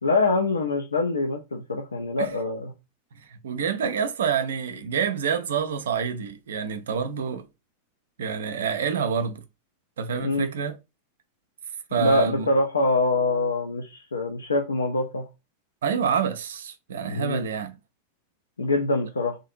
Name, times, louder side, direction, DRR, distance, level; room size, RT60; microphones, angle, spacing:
voice 1, 0.0-2.7 10.2-10.5 12.0-15.3 17.1-17.4 18.6-19.4, left 2 dB, 75° left, 0.4 m, -24 dB
voice 2, 3.3-7.5 8.2-9.4 10.0-10.8 11.9-12.5 15.8-17.7, right 7 dB, 65° right, 0.3 m, -27 dB
2.5 x 2.4 x 2.6 m
figure-of-eight pair, 90°, 0 cm